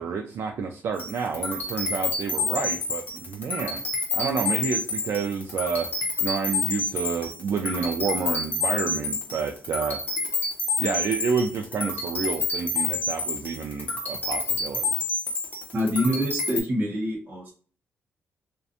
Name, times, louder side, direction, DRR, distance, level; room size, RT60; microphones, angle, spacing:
voice 1, 0.0-3.8 4.1-5.9 6.2-10.0 10.8-14.9, right 5 dB, 60° right, 3 dB, 0.3 m, -29 dB
sound 1, 1.0-16.6, left 3 dB, 40° left, 0.8 m, -29 dB
voice 2, 15.7-17.5, equal, 40° right, -3 dB, 1.2 m, -26 dB
2.4 x 2.2 x 2.7 m, 0.41 s
wide cardioid pair, 145°, 5 cm